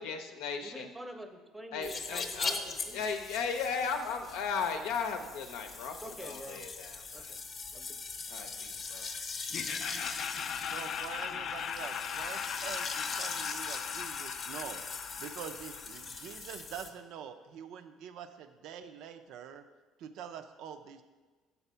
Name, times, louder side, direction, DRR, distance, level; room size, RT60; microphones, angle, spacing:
voice 1, 0.0-0.9 1.7-2.6 2.9-6.0 6.2-7.3 8.3-9.1, left 5 dB, 85° left, 5 dB, 0.7 m, -36 dB
voice 2, 0.6-3.1 5.9-6.7 7.1-7.4 7.7-8.0, right 1 dB, 10° right, 7 dB, 0.6 m, -47 dB
sound 1, 1.8-16.9, left 4 dB, 35° left, 0.8 m, -41 dB
Laughter, 9.5-16.5, left 8 dB, 55° left, 0.4 m, -39 dB
voice 3, 10.7-14.8 15.2-19.6 20.0-21.0, right 8 dB, 70° right, 9 dB, 0.4 m, -45 dB
7.0 x 4.1 x 5.5 m, 1.3 s
cardioid pair, 105°, 0 cm